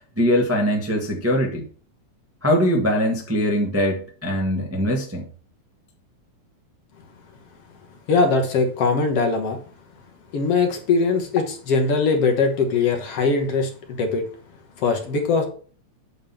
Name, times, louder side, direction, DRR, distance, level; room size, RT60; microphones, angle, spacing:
voice 1, 0.2-1.6 2.4-5.3, equal, 10° right, -1 dB, 0.9 m, -22 dB
voice 2, 8.1-9.6 10.3-14.3 14.8-15.5, left 4 dB, 60° left, 3 dB, 2.1 m, -21 dB
8.8 x 3.8 x 7.1 m, 0.42 s
omnidirectional pair, 3.4 m